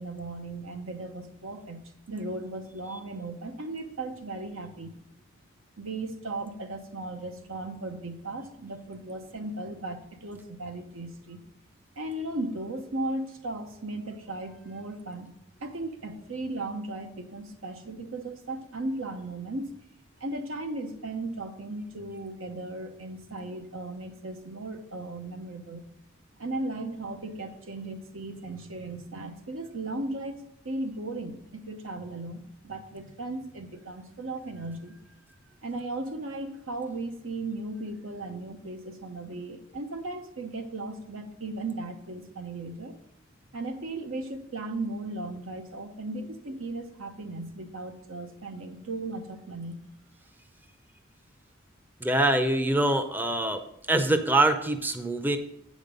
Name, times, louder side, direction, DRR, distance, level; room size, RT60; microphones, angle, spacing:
voice 1, 0.0-5.0 5.8-11.4 12.0-15.3 15.6-19.7 20.2-25.8 26.4-35.0 35.6-43.0 43.5-49.8, right 2 dB, 90° right, 6 dB, 1.0 m, -36 dB
voice 2, 52.0-53.6 53.9-55.4, right 1 dB, 10° right, 8 dB, 0.5 m, -24 dB
8.6 x 5.3 x 5.2 m, 0.77 s
head